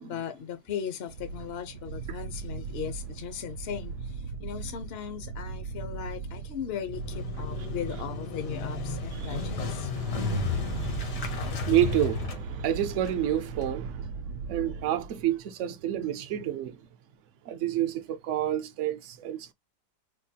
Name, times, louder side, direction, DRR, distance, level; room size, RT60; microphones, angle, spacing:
voice 1, 0.0-9.9, left 8 dB, 60° left, 0.7 m, -38 dB
sound 1, 1.1-15.3, right 5 dB, 80° right, 1.2 m, -39 dB
Motorcycle, 6.9-13.7, left 4 dB, 80° left, 1.7 m, -33 dB
voice 2, 10.0-14.0 14.5-16.7 17.5-19.5, right 11 dB, 65° right, 0.8 m, -29 dB
4.5 x 2.3 x 2.7 m
omnidirectional pair, 1.8 m